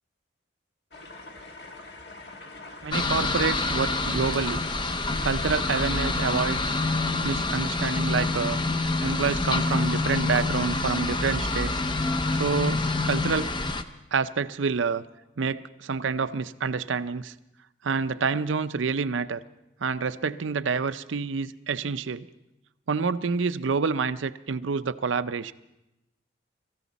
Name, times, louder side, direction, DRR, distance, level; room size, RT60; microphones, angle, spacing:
sound 1, 0.9-6.2, left 2 dB, 55° left, 1.6 m, -44 dB
voice 1, 2.8-4.7 5.2-6.8 7.2-11.8 12.3-13.5 14.1-15.0 15.4-17.3 17.8-19.4 19.8-22.3 22.9-25.5, right 5 dB, 80° right, 13 dB, 0.6 m, -28 dB
sound 2, 2.9-13.8, left 3 dB, 25° left, 0.6 m, -27 dB
25.0 x 14.5 x 4.1 m, 0.93 s
head